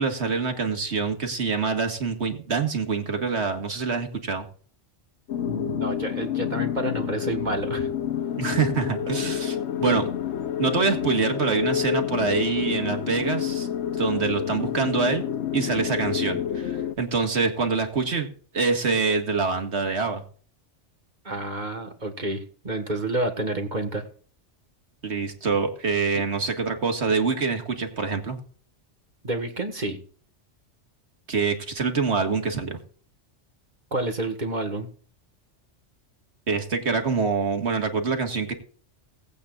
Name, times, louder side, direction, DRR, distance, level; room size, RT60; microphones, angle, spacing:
voice 1, 0.0-4.5 8.4-10.1 10.6-13.7 14.0-15.2 15.5-18.3 18.5-20.2 25.0-28.4 31.3-32.8 36.5-38.5, right 4 dB, 65° right, 5 dB, 2.0 m, -25 dB
sound 1, 5.3-16.9, left 9 dB, 70° left, 1.0 m, -28 dB
voice 2, 5.5-7.9 21.2-24.0 26.1-26.2 29.2-30.0 33.9-34.9, right 2 dB, 40° right, 5 dB, 1.7 m, -29 dB
18.5 x 8.6 x 2.5 m, 0.44 s
omnidirectional pair, 1.2 m